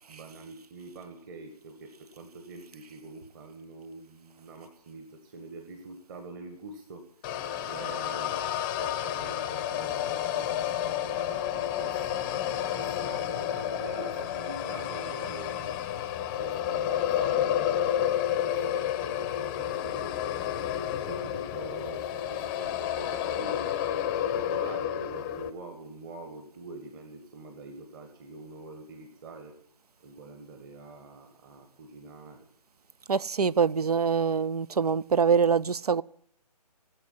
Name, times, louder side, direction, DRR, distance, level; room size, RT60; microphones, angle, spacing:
voice 1, 0.0-7.1 7.7-8.5 8.8-12.2 12.8-18.1 18.4-20.1 20.8-23.8 24.3-29.5 30.0-32.5, right 3 dB, 30° right, 1.9 m, -45 dB
sound 1, 7.2-25.5, left 10 dB, 15° left, 0.7 m, -30 dB
voice 2, 33.1-36.0, right 6 dB, 70° right, 0.6 m, -24 dB
17.5 x 7.9 x 9.9 m
figure-of-eight pair, 145°, 21 cm